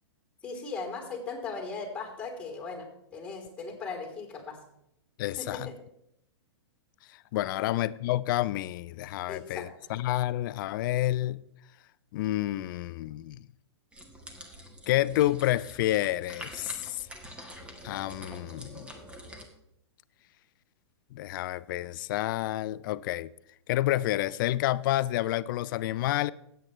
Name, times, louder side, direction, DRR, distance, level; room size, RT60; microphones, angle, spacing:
voice 1, 0.4-4.6 5.4-5.7 7.5-7.7 9.3-9.7, left 4 dB, 10° left, 3.3 m, -38 dB
voice 2, 5.2-5.7 7.1-11.4 12.1-13.4 14.9-17.1 17.8-18.9 21.1-23.3 23.7-26.3, left 15 dB, 50° left, 0.4 m, -29 dB
sound 1, 13.9-19.5, equal, 5° right, 1.4 m, -46 dB
16.5 x 8.0 x 3.2 m
hypercardioid pair, 130°, 14 cm